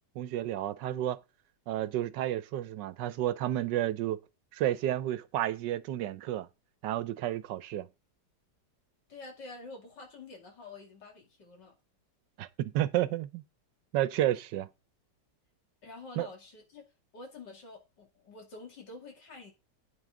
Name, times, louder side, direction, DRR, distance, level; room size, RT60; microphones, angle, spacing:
voice 1, 0.2-1.2 1.7-4.2 4.5-6.5 6.8-7.9 12.4-13.4 13.9-14.7 16.2-16.3, right 13 dB, 90° right, 1.4 m, -31 dB
voice 2, 9.1-11.7 15.8-16.8 17.1-19.5, left 3 dB, 80° left, 3.0 m, -48 dB
9.2 x 8.9 x 3.7 m
omnidirectional pair, 1.8 m